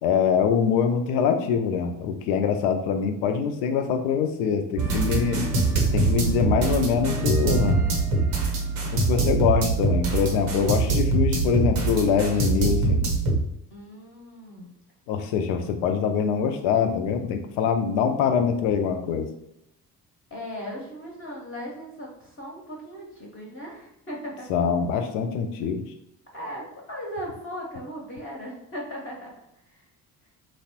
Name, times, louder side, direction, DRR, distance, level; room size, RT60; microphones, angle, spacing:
voice 1, 0.0-5.4 5.9-7.8 8.9-13.1 15.1-19.3 24.5-25.8, left 7 dB, 65° left, 6 dB, 0.5 m, -24 dB
sound 1, 4.8-13.4, right 3 dB, 80° right, 0.7 m, -23 dB
voice 2, 13.7-14.7 20.3-24.5 26.3-29.3 29.7-29.8, equal, 25° left, -3 dB, 0.8 m, -37 dB
3.0 x 2.0 x 2.8 m, 0.80 s
figure-of-eight pair, 45°, 48 cm